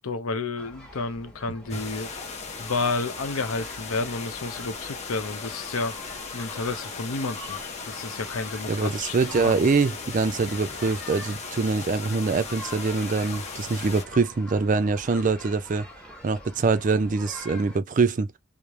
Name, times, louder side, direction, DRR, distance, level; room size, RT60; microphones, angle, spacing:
voice 1, 0.0-2.1 2.6-5.9 6.3-7.6 7.9-9.6, left 3 dB, 85° left, 0.7 m, -31 dB
sound 1, 0.6-17.8, left 1 dB, 5° left, 0.9 m, -44 dB
sound 2, 1.7-14.0, left 5 dB, 30° left, 0.6 m, -38 dB
voice 2, 8.7-15.9 16.2-18.3, right 4 dB, 40° right, 0.4 m, -24 dB
3.1 x 2.0 x 2.4 m
head